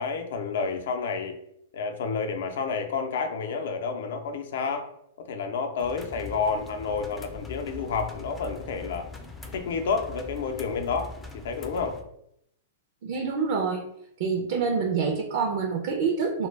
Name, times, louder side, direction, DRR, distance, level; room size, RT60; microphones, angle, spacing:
voice 1, 0.0-1.4 1.7-4.9 5.2-9.1 9.5-12.0, left 5 dB, 70° left, 5 dB, 0.5 m, -30 dB
sound 1, 5.8-12.0, left 3 dB, 10° left, 0.3 m, -42 dB
voice 2, 13.0-13.8 14.2-16.5, right 5 dB, 60° right, 2 dB, 0.4 m, -26 dB
2.2 x 2.1 x 3.2 m, 0.75 s
hypercardioid pair, 140°, 0 cm